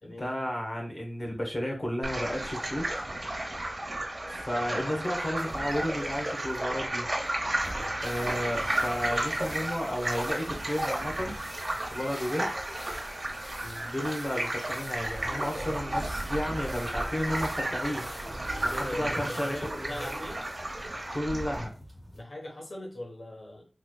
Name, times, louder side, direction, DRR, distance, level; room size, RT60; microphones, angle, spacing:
voice 1, 0.0-2.9 4.3-7.1 8.0-11.4 11.9-12.5 13.8-18.1 18.6-19.5 21.1-21.7, equal, 50° left, -1 dB, 1.2 m, -32 dB
sound 1, 2.0-21.6, right 1 dB, 50° right, 1.1 m, -33 dB
sound 2, 4.4-22.2, equal, 20° left, 1.5 m, -50 dB
voice 2, 4.5-5.0 13.6-13.9 18.7-20.4 22.1-23.7, left 1 dB, 80° left, -2 dB, 1.1 m, -40 dB
sound 3, 15.2-20.5, right 1 dB, 25° right, 0.8 m, -46 dB
4.1 x 3.1 x 2.4 m, 0.34 s
wide cardioid pair, 50°, 0 cm